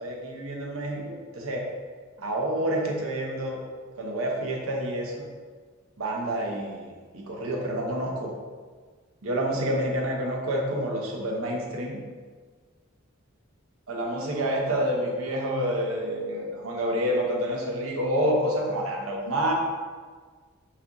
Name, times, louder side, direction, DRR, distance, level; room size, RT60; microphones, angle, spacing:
voice 1, 0.0-1.7 2.2-3.6 4.0-5.3 6.0-8.3 9.2-12.0 13.9-19.5, equal, 90° right, 0 dB, 0.8 m, -28 dB
5.8 x 2.5 x 2.9 m, 1.5 s
head